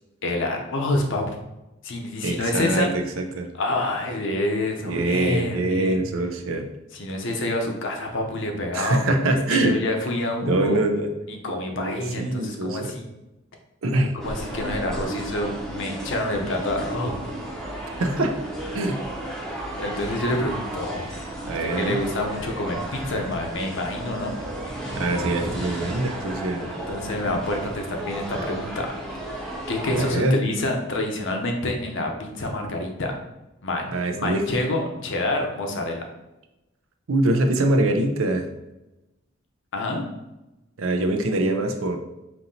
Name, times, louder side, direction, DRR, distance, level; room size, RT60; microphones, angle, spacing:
voice 1, 0.2-1.4 1.8-2.9 3.6-6.0 6.9-9.0 9.5-10.8 11.3-13.1 14.1-17.1 19.8-21.1 21.8-24.3 26.6-28.9 29.7-33.1 33.6-36.0 39.7-40.0, left 1 dB, 60° left, 2 dB, 0.7 m, -27 dB
voice 2, 2.2-3.5 4.9-6.7 8.7-9.8 10.4-11.1 11.8-12.9 13.8-14.1 18.0-18.4 18.7-19.0 21.5-22.0 25.0-26.7 30.0-30.4 33.9-34.5 37.1-38.5 40.8-42.0, right 2 dB, 75° right, 5 dB, 0.5 m, -24 dB
sound 1, 14.2-30.1, right 1 dB, 5° left, 0.6 m, -33 dB
5.3 x 2.8 x 2.7 m, 0.98 s
head